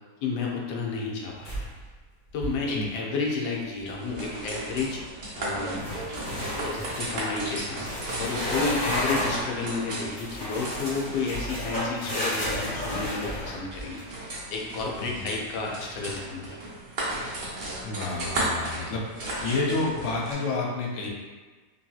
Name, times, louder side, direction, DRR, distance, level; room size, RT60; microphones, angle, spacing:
voice 1, 0.2-1.7 2.3-5.0 5.4-6.0 6.6-7.8 8.2-14.1 14.5-16.6, left 4 dB, 90° left, -2 dB, 1.2 m, -31 dB
sound 1, 1.4-1.9 2.3-2.7 5.8-7.1 7.8-9.5 10.2-14.0, left 1 dB, 35° left, 1.4 m, -31 dB
sound 2, 3.9-20.3, right 1 dB, 55° right, 0.5 m, -35 dB
voice 2, 17.8-19.1 19.4-21.1, left 3 dB, 70° left, -2 dB, 0.7 m, -29 dB
3.0 x 2.7 x 2.3 m, 1.4 s
omnidirectional pair, 1.7 m